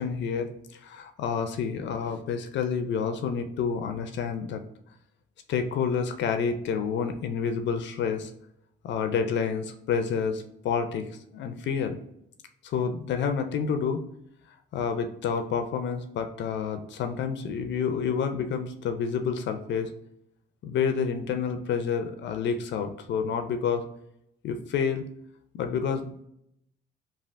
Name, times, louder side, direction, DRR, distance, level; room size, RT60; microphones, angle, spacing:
voice 1, 0.0-4.6 5.5-8.3 8.8-12.0 12.6-14.0 14.7-19.9 20.6-23.8 24.4-25.0 25.5-26.3, left 6 dB, 65° left, 7 dB, 0.4 m, -29 dB
3.3 x 2.3 x 2.4 m, 0.74 s
cardioid pair, 90°, 20 cm